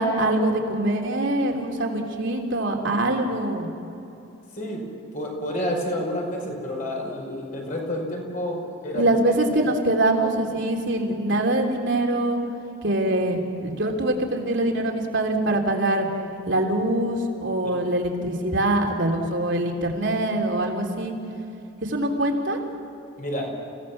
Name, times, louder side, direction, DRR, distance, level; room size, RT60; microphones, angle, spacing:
voice 1, 0.0-3.7 8.9-12.4 12.8-16.1 16.5-21.1 21.8-22.6, right 1 dB, 65° right, 1 dB, 3.2 m, -24 dB
voice 2, 4.5-4.8 5.1-9.1 17.6-17.7 23.2-23.5, left 1 dB, 40° left, 0 dB, 5.3 m, -29 dB
30.0 x 17.0 x 7.3 m, 2.9 s
head